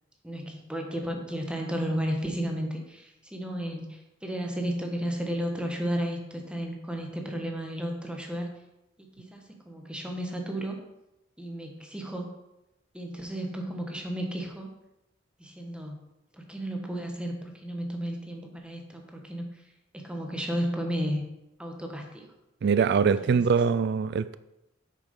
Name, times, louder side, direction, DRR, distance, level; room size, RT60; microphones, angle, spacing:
voice 1, 0.2-8.5 9.2-10.8 11.4-12.3 12.9-14.7 15.4-16.0 16.3-19.6 19.9-21.2 21.6-22.3 23.2-23.5, equal, 5° right, 1 dB, 1.5 m, -33 dB
voice 2, 22.6-24.4, right 6 dB, 60° right, 14 dB, 0.3 m, -23 dB
8.3 x 6.7 x 5.4 m, 0.90 s
head